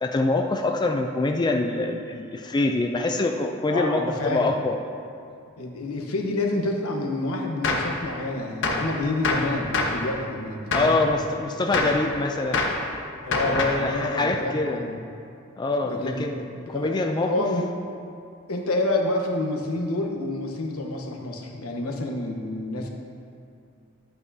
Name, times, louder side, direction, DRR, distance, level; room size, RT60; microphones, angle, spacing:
voice 1, 0.0-4.8 10.7-12.7 13.4-14.8 15.6-16.4 16.7-17.5, left 2 dB, 20° left, 4 dB, 0.3 m, -25 dB
voice 2, 3.7-4.5 5.6-11.0 11.7-11.9 13.2-15.0 15.8-17.0 17.2-17.7 18.5-22.9, left 2 dB, 90° left, 1 dB, 1.0 m, -28 dB
Gunshot gunfire, 7.6-7.9 8.6-8.9 9.2-10.0 10.7-11.0 11.7-12.0 12.5-12.8 13.3-13.9, left 3 dB, 60° left, 0.9 m, -25 dB
11.0 x 8.1 x 2.7 m, 2.4 s
head